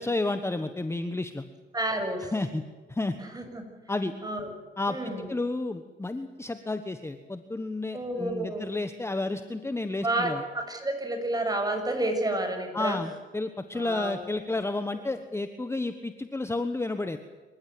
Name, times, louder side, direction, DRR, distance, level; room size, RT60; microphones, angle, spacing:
voice 1, 0.0-1.4 2.3-2.6 2.9-3.1 3.9-4.1 4.8-5.0 5.3-10.4 12.7-17.2, left 2 dB, 15° left, 9 dB, 1.2 m, -31 dB
voice 2, 1.7-2.3 3.2-3.6 4.2-4.5 4.9-5.3 7.9-8.7 10.0-13.0 13.7-14.2 14.9-15.0, right 1 dB, 20° right, 5 dB, 6.7 m, -30 dB
27.0 x 15.0 x 9.5 m, 1.4 s
cardioid pair, 90°, 20 cm